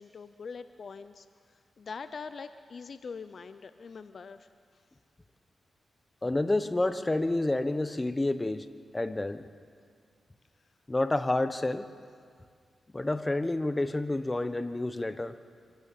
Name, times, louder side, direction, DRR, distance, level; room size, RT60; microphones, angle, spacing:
voice 1, 0.0-4.8, left 5 dB, 60° left, 11 dB, 0.7 m, -44 dB
voice 2, 6.2-8.7 8.9-9.4 10.9-11.9 12.9-15.4, left 2 dB, 20° left, 11 dB, 1.1 m, -29 dB
26.0 x 12.5 x 8.5 m, 2.1 s
cardioid pair, 55°, 0 cm